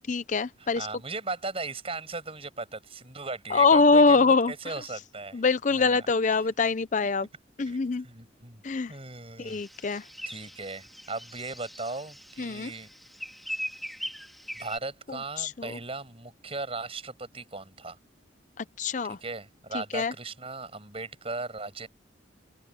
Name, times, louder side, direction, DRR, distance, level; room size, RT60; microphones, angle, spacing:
voice 1, 0.1-0.9 3.5-4.7 5.3-7.3 7.6-8.1 8.6-8.9 9.4-10.0 12.4-12.7 15.1-15.8 18.6-19.2 19.7-20.1, left 4 dB, 40° left, 0.5 m, -24 dB
voice 2, 0.6-5.4 5.7-6.4 7.6-8.6 8.9-9.6 10.3-12.9 14.5-18.0 19.0-21.9, right 3 dB, 30° right, 7.0 m, -38 dB
sound 1, 9.5-14.8, equal, ahead, 4.2 m, -41 dB
open air
head